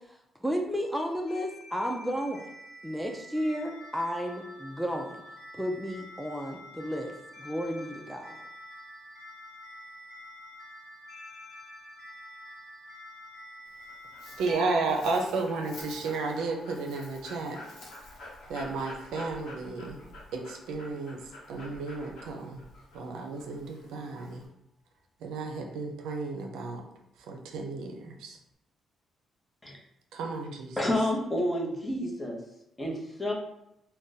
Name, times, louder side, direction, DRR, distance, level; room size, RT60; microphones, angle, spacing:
voice 1, 0.1-2.5 2.8-5.2 5.5-8.4, equal, ahead, 1 dB, 0.4 m, -33 dB
sound 1, 0.8-14.5, left 1 dB, 60° left, 0.9 m, -48 dB
Dog, 13.7-24.5, left 1 dB, 85° left, 1.1 m, -48 dB
voice 2, 14.4-17.6 18.5-20.0 20.3-22.6 22.9-24.4 25.2-26.8 27.3-28.4 30.1-30.8, right 3 dB, 85° right, 2 dB, 0.5 m, -33 dB
sound 2, 14.5-21.6 27.2-27.3, left 2 dB, 40° right, 1.0 m, -48 dB
voice 3, 30.8-32.4 32.8-33.3, left 1 dB, 15° left, -1 dB, 0.8 m, -29 dB
2.5 x 2.2 x 3.9 m, 0.83 s
cardioid pair, 90°, 0 cm